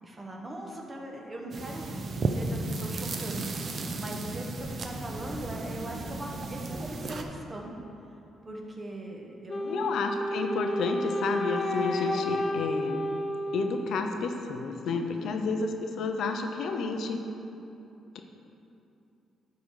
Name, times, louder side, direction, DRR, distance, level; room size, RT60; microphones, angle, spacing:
voice 1, 0.0-1.8 2.1-7.7 8.4-9.9 14.8-15.4, right 1 dB, 25° right, 0 dB, 1.3 m, -40 dB
sound 1, 1.5-7.2, right 3 dB, 45° right, 0.7 m, -34 dB
Wind instrument woodwind instrument, 9.5-14.5, equal, 35° left, 0.7 m, -31 dB
voice 2, 9.6-13.0 13.5-17.2, left 4 dB, 70° left, 5 dB, 0.6 m, -31 dB
11.5 x 3.9 x 4.8 m, 2.8 s
cardioid pair, 90°, 0 cm